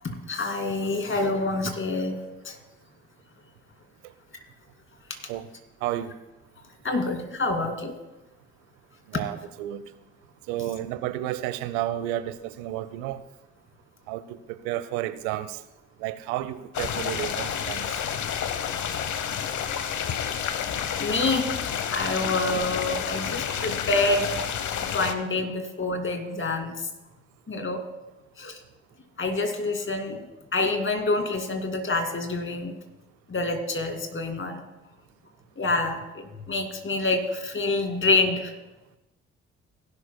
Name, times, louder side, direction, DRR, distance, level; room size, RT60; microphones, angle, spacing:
voice 1, 0.0-2.2 2.4-2.6 6.8-7.9 9.1-9.2 21.0-21.5 21.9-24.3 24.8-26.7 27.5-27.8 28.4-28.6 29.2-30.3 30.5-32.7 33.3-34.6 35.6-38.5, left 2 dB, 35° left, 5 dB, 2.4 m, -27 dB
voice 2, 5.8-6.1 9.1-9.8 10.5-13.2 14.1-15.6 16.0-17.9, right 13 dB, 75° right, 14 dB, 0.7 m, -31 dB
sound 1, 16.7-25.1, left 8 dB, 55° left, 1.0 m, -29 dB
17.5 x 11.5 x 2.2 m, 1.0 s
hypercardioid pair, 45°, 35 cm